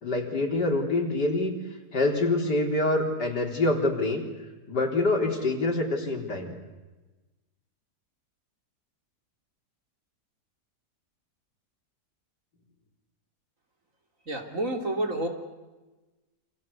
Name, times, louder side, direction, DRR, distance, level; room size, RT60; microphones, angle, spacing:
voice 1, 0.0-1.5 1.9-4.2 4.7-6.5, left 2 dB, 90° left, 1 dB, 4.4 m, -25 dB
voice 2, 14.3-15.3, right 1 dB, 50° right, 4 dB, 3.5 m, -29 dB
28.5 x 26.5 x 7.0 m, 1.2 s
omnidirectional pair, 1.7 m